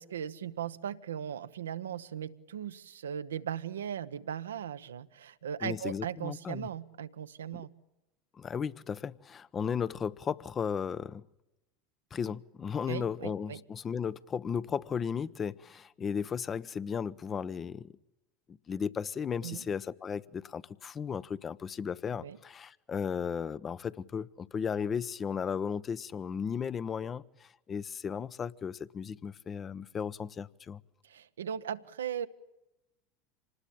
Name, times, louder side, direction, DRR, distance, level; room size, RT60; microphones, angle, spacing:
voice 1, 0.0-7.7 12.9-13.6 19.4-19.6 22.2-22.4 31.0-32.3, right 9 dB, 80° right, 0.9 m, -38 dB
voice 2, 5.6-6.7 7.5-7.6 8.3-11.2 12.1-17.9 18.5-30.8, left 7 dB, 30° left, 0.9 m, -35 dB
26.5 x 19.5 x 8.6 m
hypercardioid pair, 80°, 0 cm